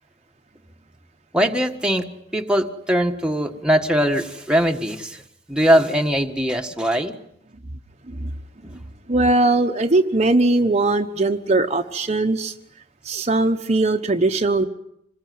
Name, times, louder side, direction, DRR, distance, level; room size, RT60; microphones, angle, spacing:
voice 1, 1.3-5.2 5.5-7.2, equal, 5° right, 3 dB, 1.6 m, -21 dB
voice 2, 9.1-12.5 13.0-14.7, right 2 dB, 35° right, 5 dB, 1.1 m, -19 dB
26.5 x 21.0 x 9.5 m, 0.78 s
head